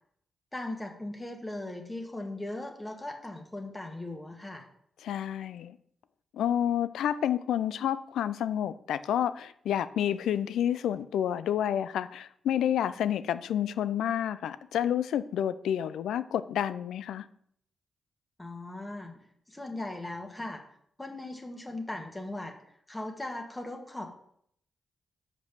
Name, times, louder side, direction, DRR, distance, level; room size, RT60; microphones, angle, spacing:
voice 1, 0.5-4.6 18.4-19.2 19.5-20.6 21.0-22.5 22.9-24.1, left 2 dB, 20° left, 3 dB, 1.6 m, -38 dB
voice 2, 5.0-5.8 6.3-17.3, left 10 dB, 80° left, 14 dB, 0.3 m, -29 dB
5.3 x 5.1 x 6.0 m, 0.67 s
supercardioid pair, 50°, 0 cm